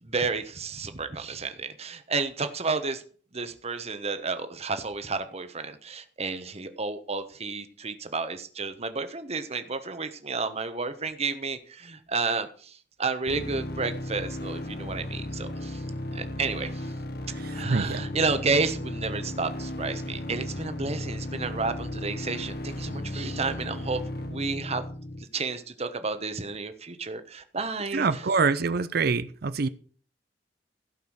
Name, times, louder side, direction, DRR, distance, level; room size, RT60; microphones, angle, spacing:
voice 1, 0.0-3.0 3.3-15.8 16.1-16.9 17.5-24.0 24.3-24.8 25.3-28.2, right 4 dB, 35° right, 10 dB, 1.2 m, -31 dB
sound 1, 13.3-25.2, left 1 dB, 60° left, 1.4 m, -35 dB
voice 2, 17.3-18.0 27.9-29.7, right 4 dB, 60° right, 14 dB, 0.6 m, -25 dB
16.0 x 5.5 x 6.3 m, 0.44 s
head